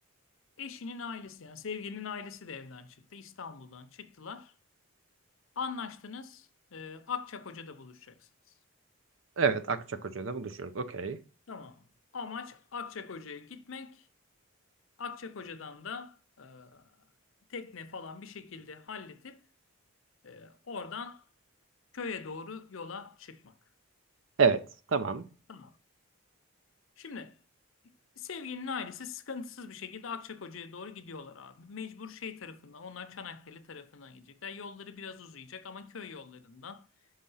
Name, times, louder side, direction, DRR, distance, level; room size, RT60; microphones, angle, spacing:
voice 1, 0.6-4.5 5.6-8.3 11.5-11.8 12.1-14.1 15.0-16.9 17.5-19.4 20.2-21.2 21.9-23.5 25.5-25.8 27.0-27.3 28.2-36.9, left 5 dB, 70° left, 0.7 m, -42 dB
voice 2, 9.4-11.2 24.4-24.6 24.9-25.2, right 5 dB, 65° right, 0.6 m, -28 dB
5.7 x 3.7 x 5.5 m
head